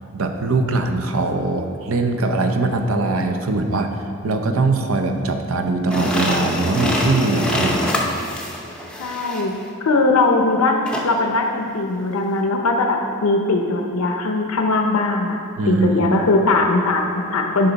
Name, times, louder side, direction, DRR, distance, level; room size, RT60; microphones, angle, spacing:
voice 1, 0.1-8.1 15.6-16.3, right 3 dB, 75° right, 5 dB, 0.6 m, -21 dB
sound 1, 5.9-9.6 10.9-11.1, equal, 5° left, 0.6 m, -24 dB
voice 2, 9.0-9.5 9.8-15.4 15.6-17.7, left 2 dB, 90° left, 3 dB, 0.6 m, -20 dB
8.7 x 5.5 x 4.0 m, 2.6 s
head